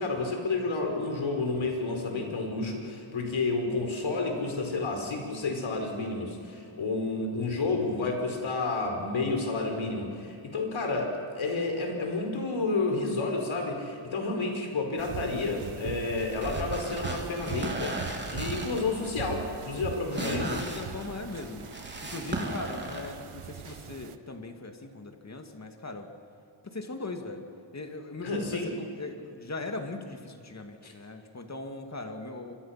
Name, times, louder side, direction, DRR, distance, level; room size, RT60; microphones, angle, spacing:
voice 1, 0.0-18.0 18.3-20.6 23.7-23.8 28.2-28.7 30.8-30.9, left 3 dB, 65° left, 3 dB, 5.0 m, -30 dB
sound 1, 15.0-24.2, right 9 dB, 85° right, 1.1 m, -41 dB
sound 2, 16.3-23.1, right 2 dB, 20° right, 3.5 m, -36 dB
voice 2, 20.1-21.7 22.0-26.1 26.6-27.5 27.7-32.5, left 3 dB, 30° left, 5 dB, 2.5 m, -39 dB
28.5 x 24.5 x 6.0 m, 2.6 s
wide cardioid pair, 110°, 49 cm